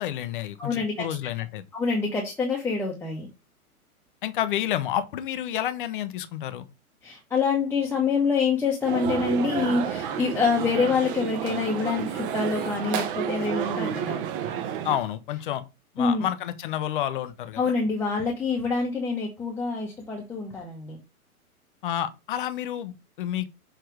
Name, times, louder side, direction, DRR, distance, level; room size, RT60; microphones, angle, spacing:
voice 1, 0.0-1.6 4.2-6.7 14.8-15.6 16.0-17.7 21.8-23.5, left 11 dB, 35° left, 0.6 m, -29 dB
voice 2, 0.6-1.1 1.7-3.3 7.0-14.2 16.0-16.3 17.6-21.0, left 4 dB, 5° left, 0.9 m, -26 dB
sound 1, 8.8-15.0, right 8 dB, 35° right, 1.0 m, -30 dB
6.5 x 3.3 x 4.7 m
figure-of-eight pair, 120°, 45 cm